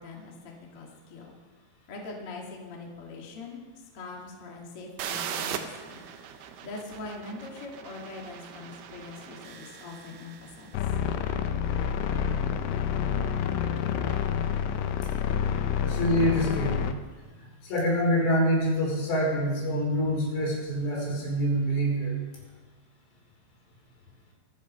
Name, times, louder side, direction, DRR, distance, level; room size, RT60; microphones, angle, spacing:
voice 1, 0.0-1.4 1.9-3.6 3.9-6.1 6.6-10.8, left 3 dB, 40° left, -1 dB, 2.2 m, -42 dB
sound 1, 5.0-10.7, right 8 dB, 70° right, 2.5 m, -39 dB
sound 2, 10.7-16.9, left 8 dB, 85° left, 3.4 m, -28 dB
voice 2, 15.8-16.8 17.6-22.1, equal, 65° left, -3 dB, 7.0 m, -26 dB
25.0 x 9.5 x 5.6 m, 1.4 s
omnidirectional pair, 5.5 m